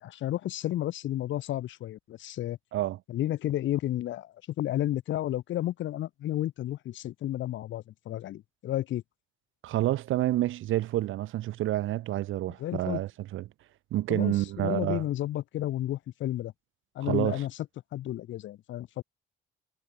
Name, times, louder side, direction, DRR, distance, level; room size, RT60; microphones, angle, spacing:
voice 1, 0.0-2.6 3.1-9.0 12.6-13.0 14.1-16.5 16.9-17.5 17.9-19.0, left 13 dB, 75° left, 0.9 m, -32 dB
voice 2, 9.6-13.4 13.9-15.0 17.0-17.4, right 14 dB, 85° right, 1.7 m, -28 dB
cardioid pair, 90°, 20 cm